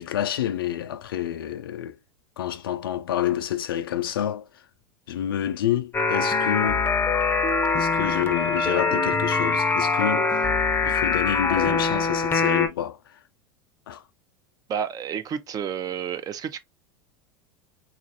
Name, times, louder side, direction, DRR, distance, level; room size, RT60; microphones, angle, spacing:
voice 1, 0.0-2.0 2.4-4.5 5.1-6.9 7.7-10.4 10.8-13.0 13.9-14.0, left 11 dB, 85° left, 0.4 m, -28 dB
sound 1, 5.9-12.7, left 4 dB, 20° left, 0.6 m, -23 dB
voice 2, 14.7-16.6, right 8 dB, 35° right, 0.5 m, -30 dB
3.2 x 2.4 x 2.5 m
hypercardioid pair, 90°, 12 cm